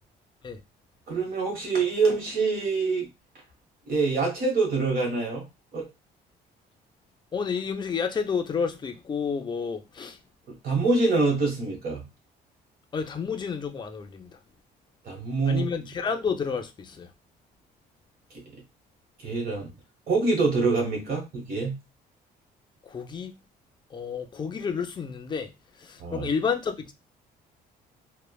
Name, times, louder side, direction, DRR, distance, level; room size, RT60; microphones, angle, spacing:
voice 1, 1.1-3.1 3.9-5.4 5.7-5.9 10.5-12.1 15.0-15.6 18.5-18.6 19.2-19.7 20.1-21.7 26.0-26.3, right 3 dB, 60° right, 1.2 m, -25 dB
voice 2, 7.3-10.2 12.9-14.4 15.5-17.1 22.8-23.4 23.9-25.5 25.8-26.9, left 6 dB, 25° left, 0.5 m, -30 dB
3.1 x 2.1 x 2.3 m
cardioid pair, 110°, 17 cm